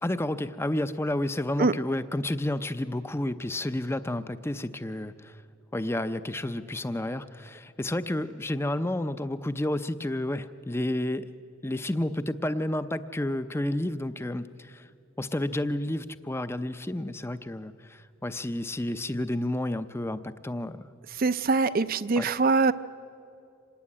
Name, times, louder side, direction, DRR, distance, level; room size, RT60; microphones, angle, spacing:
voice 1, 0.0-5.4 5.7-11.3 11.6-14.9 15.2-21.0 22.2-22.3, left 1 dB, 10° left, 12 dB, 0.5 m, -31 dB
voice 2, 21.2-22.7, right 4 dB, 45° right, 14 dB, 0.5 m, -23 dB
25.5 x 18.5 x 9.8 m, 2.6 s
head